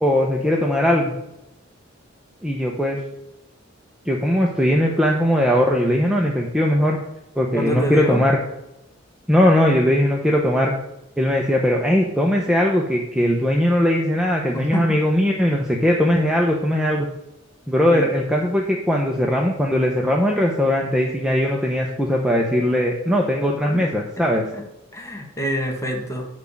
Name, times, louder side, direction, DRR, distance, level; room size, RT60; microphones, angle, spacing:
voice 1, 0.0-1.1 2.4-3.0 4.1-7.0 7.4-8.4 9.3-10.7 11.2-17.1 17.7-24.4, equal, 5° right, -1 dB, 0.9 m, -19 dB
voice 2, 7.5-8.2 14.5-15.0 17.9-18.1 23.7-23.9 24.2-24.6 24.9-26.3, equal, 15° left, 2 dB, 1.7 m, -27 dB
10.5 x 3.6 x 7.2 m, 0.89 s
head